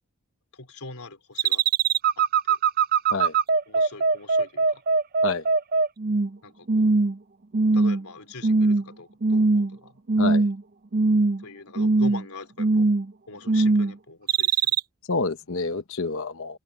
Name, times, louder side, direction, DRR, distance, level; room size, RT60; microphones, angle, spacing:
voice 1, 0.5-1.7 2.2-2.6 3.7-4.8 6.4-6.9 7.7-10.0 11.4-12.9 13.3-14.8, left 3 dB, 85° left, 3.6 m, -42 dB
sound 1, 1.4-6.4 6.7-7.2 7.5-8.1 8.4-8.8 9.2-9.8 10.1-10.6 10.9-11.4 11.8-12.2 12.6-13.1 13.5-13.9 14.3-14.8, right 4 dB, 40° right, 0.5 m, -21 dB
voice 2, 15.1-16.6, left 3 dB, 65° left, 1.0 m, -28 dB
head